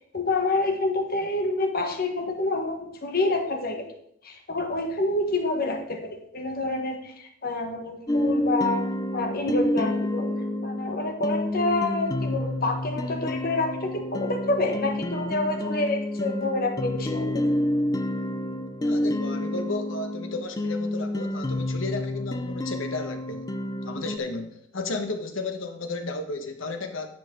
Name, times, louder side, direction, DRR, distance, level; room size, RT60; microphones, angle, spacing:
voice 1, 0.1-3.9 4.2-8.9 9.1-10.3 10.6-17.4, left 2 dB, 50° left, 5 dB, 1.4 m, -27 dB
sound 1, 8.1-24.2, left 1 dB, 20° left, 0.4 m, -29 dB
voice 2, 18.8-23.5 23.8-27.1, left 3 dB, 85° left, 6 dB, 1.3 m, -33 dB
10.5 x 7.6 x 3.8 m, 0.73 s
head